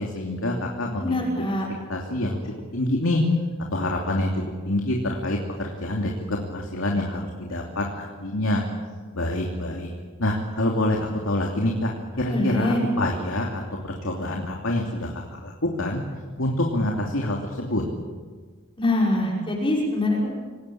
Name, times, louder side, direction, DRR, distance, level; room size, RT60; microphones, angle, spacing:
voice 1, 0.0-1.2 1.9-3.2 3.7-8.6 9.1-9.9 10.2-11.9 12.2-16.0 16.4-17.8, left 1 dB, 65° left, 0 dB, 2.9 m, -26 dB
voice 2, 1.0-1.7 12.3-12.8 18.8-20.3, left 1 dB, 25° left, -3 dB, 5.6 m, -24 dB
28.5 x 18.5 x 8.7 m, 1.5 s
head